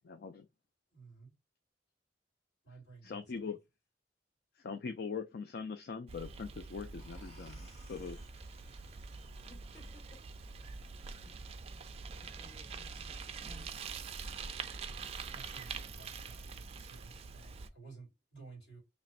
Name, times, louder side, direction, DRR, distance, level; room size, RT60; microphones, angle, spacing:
voice 1, 0.0-0.5 3.0-3.6 4.6-8.2, left 5 dB, 55° left, 0.4 m, -42 dB
voice 2, 0.9-1.4 2.6-3.5 15.3-18.8, right 3 dB, 70° left, 2.3 m, -55 dB
Bicycle, 6.1-17.7, right 5 dB, 35° right, 0.3 m, -45 dB
sound 1, 7.0-12.4, left 2 dB, 35° left, 1.3 m, -64 dB
voice 3, 9.5-10.6 11.0-11.4 12.2-13.7, left 2 dB, 15° left, 0.6 m, -61 dB
3.0 x 2.5 x 4.1 m
head